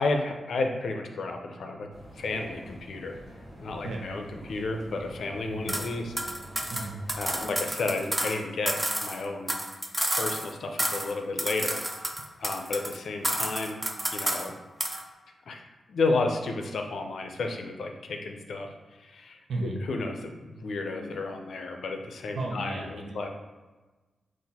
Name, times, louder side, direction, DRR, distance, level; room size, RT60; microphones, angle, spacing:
voice 1, 0.0-1.9 2.2-3.2 3.6-6.1 7.2-9.6 10.1-11.8 12.4-13.8 14.1-14.5 15.5-18.7 19.0-23.3, left 3 dB, 65° left, 4 dB, 0.5 m, -32 dB
sound 1, 1.9-7.4, equal, 30° right, 1.4 m, -46 dB
sound 2, 5.7-5.9 6.2-8.4 8.7-10.5 10.8-11.1 11.4-13.0 13.2-14.5 14.8-15.0, right 1 dB, 10° right, 0.4 m, -30 dB
voice 2, 6.7-7.0 19.5-19.8 22.3-23.3, right 2 dB, 85° right, -1 dB, 0.7 m, -34 dB
4.1 x 2.5 x 4.1 m, 1.2 s
wide cardioid pair, 160°, 0 cm